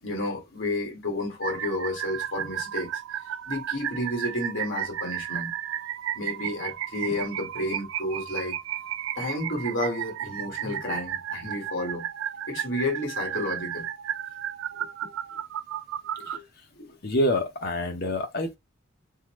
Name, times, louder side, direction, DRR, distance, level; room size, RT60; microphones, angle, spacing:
voice 1, 0.0-5.5 6.1-8.6 9.2-12.1 12.5-13.9 14.8-15.1 16.2-16.4 16.8-16.9, left 1 dB, 80° left, 1.6 m, -31 dB
sound 1, 1.4-16.4, right 10 dB, 80° right, 0.3 m, -33 dB
voice 2, 17.0-18.6, left 1 dB, 55° left, 0.8 m, -26 dB
3.7 x 2.1 x 3.1 m
head